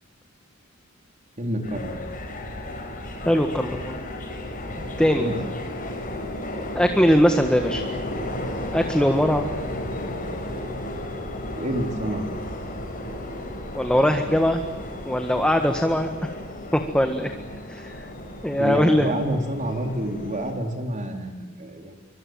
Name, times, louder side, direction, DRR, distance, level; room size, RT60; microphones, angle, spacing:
voice 1, 1.4-1.9 5.2-5.4 11.5-12.3 18.6-21.9, right 1 dB, 35° right, 3 dB, 4.0 m, -28 dB
sound 1, 1.6-20.5, left 1 dB, 40° left, 6.4 m, -34 dB
voice 2, 3.2-4.0 5.0-5.3 6.7-7.8 8.7-9.5 13.7-14.6 15.0-16.3 16.7-17.3 17.7-18.1 18.4-19.1, equal, 5° left, 5 dB, 1.6 m, -21 dB
25.5 x 25.0 x 9.2 m, 1.3 s
head